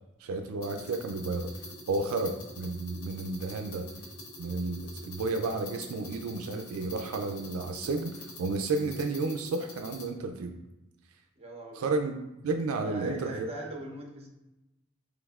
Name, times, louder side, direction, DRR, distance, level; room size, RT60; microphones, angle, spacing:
voice 1, 0.2-3.8 4.4-10.5 11.7-12.1 12.4-13.5, right 3 dB, 75° right, 5 dB, 0.4 m, -32 dB
sound 1, 0.6-10.1, left 1 dB, 80° left, 1.0 m, -46 dB
voice 2, 11.4-11.9 12.8-14.3, right 1 dB, 30° right, 1 dB, 0.7 m, -40 dB
5.1 x 3.4 x 2.3 m, 0.98 s
head